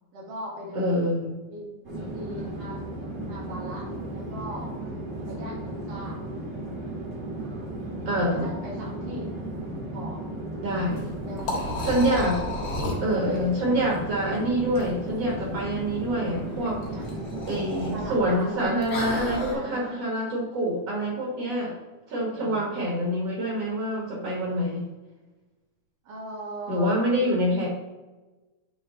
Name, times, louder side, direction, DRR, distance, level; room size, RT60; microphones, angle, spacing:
voice 1, 0.1-1.0 1.5-2.8 3.3-4.7 5.3-6.2 7.8-9.3 9.9-10.2 11.2-12.0 13.1-14.0 16.6-17.1 17.9-18.7 19.3-20.0 22.3-22.6 26.0-27.0, right 1 dB, 75° right, -4 dB, 3.4 m, -39 dB
voice 2, 0.8-1.3 8.1-8.5 10.6-11.1 11.9-12.4 13.0-16.8 17.5-21.7 22.1-24.8 26.7-27.7, equal, 55° right, -3 dB, 2.2 m, -26 dB
Conversation / Chatter / Fixed-wing aircraft airplane, 1.8-18.5, right 1 dB, 40° right, 1.4 m, -35 dB
Liquid, 10.8-19.5, left 2 dB, 45° left, 1.2 m, -34 dB
8.8 x 3.3 x 4.0 m, 1.2 s
omnidirectional pair, 3.7 m